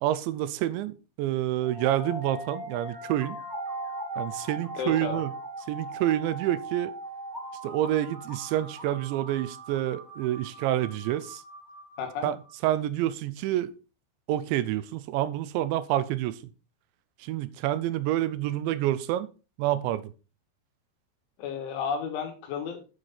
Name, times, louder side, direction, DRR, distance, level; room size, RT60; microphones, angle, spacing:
voice 1, 0.0-3.4 4.2-5.3 5.7-6.9 7.6-11.4 12.2-12.4 12.6-13.7 14.3-16.4 17.2-19.3 19.6-20.1, right 13 dB, 80° right, 14 dB, 2.9 m, -28 dB
sound 1, 1.6-12.5, right 2 dB, 15° right, 0.6 m, -39 dB
voice 2, 4.8-5.2 12.0-12.3 21.4-22.8, left 6 dB, 85° left, 5 dB, 4.3 m, -32 dB
9.2 x 8.0 x 4.2 m, 0.32 s
omnidirectional pair, 5.3 m